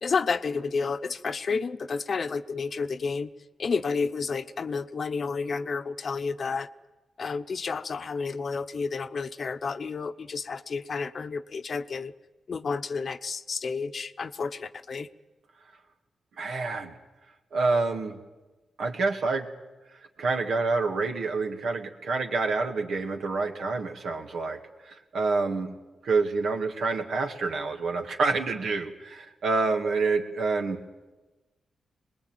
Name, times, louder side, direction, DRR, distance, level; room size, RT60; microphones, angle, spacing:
voice 1, 0.0-3.3 3.6-6.7 7.2-12.1 12.5-15.1, left 5 dB, 55° left, 11 dB, 0.9 m, -30 dB
voice 2, 16.4-16.9 17.5-18.2 18.8-19.5 20.2-25.7 26.0-30.8, right 3 dB, 75° right, 4 dB, 2.3 m, -27 dB
22.0 x 20.0 x 9.2 m, 1.2 s
cardioid pair, 70°, 0 cm